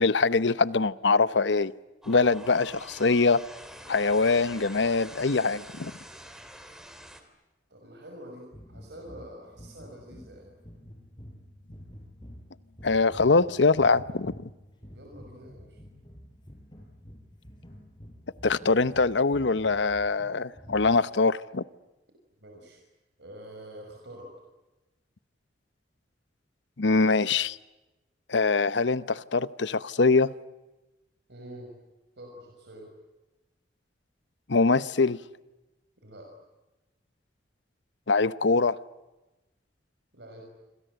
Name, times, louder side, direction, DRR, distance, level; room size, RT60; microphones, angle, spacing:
voice 1, 0.0-1.7 2.1-3.4 3.9-5.9 12.8-14.5 18.4-21.6 26.8-27.6 28.3-30.3 34.5-35.2 38.1-38.8, left 3 dB, 75° left, 0.9 m, -23 dB
sound 1, 2.0-7.2, equal, 5° right, 3.2 m, -46 dB
voice 2, 7.7-10.5 14.9-15.8 18.9-19.1 22.4-22.8 23.2-24.3 31.3-31.7 32.2-32.9 36.0-36.3 40.1-40.5, right 1 dB, 65° right, 5.8 m, -46 dB
sound 2, 8.5-21.2, equal, 25° left, 6.1 m, -49 dB
27.0 x 26.5 x 7.9 m
head